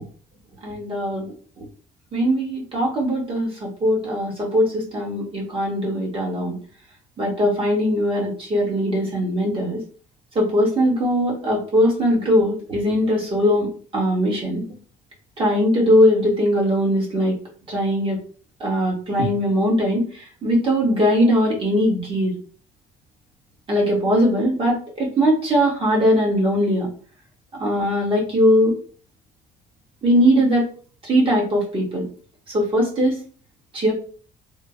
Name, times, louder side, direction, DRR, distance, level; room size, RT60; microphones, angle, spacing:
voice 1, 0.6-1.2 2.1-6.6 7.2-9.8 10.3-13.7 13.9-14.6 15.4-17.3 17.7-18.2 18.6-20.0 20.4-22.3 23.7-26.9 27.6-28.8 30.0-30.6 31.1-32.0 32.5-33.2 33.7-33.9, equal, 30° right, -3 dB, 1.5 m, -20 dB
3.6 x 2.2 x 2.6 m, 0.41 s
cardioid pair, 110°, 17 cm